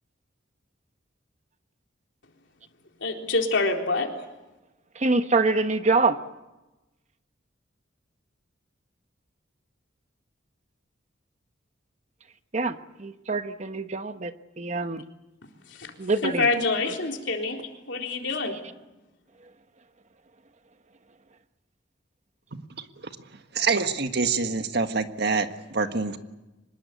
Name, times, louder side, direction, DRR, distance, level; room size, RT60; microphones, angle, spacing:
voice 1, 3.0-4.1 15.7-15.9 16.2-17.6 17.9-18.6, left 3 dB, 65° left, 2 dB, 4.0 m, -26 dB
voice 2, 4.9-6.2 12.5-15.0 16.0-16.5, right 3 dB, 35° right, 10 dB, 1.0 m, -25 dB
voice 3, 22.5-22.9 23.5-26.2, right 4 dB, 60° right, 7 dB, 1.7 m, -26 dB
25.0 x 21.0 x 8.3 m, 1.0 s
head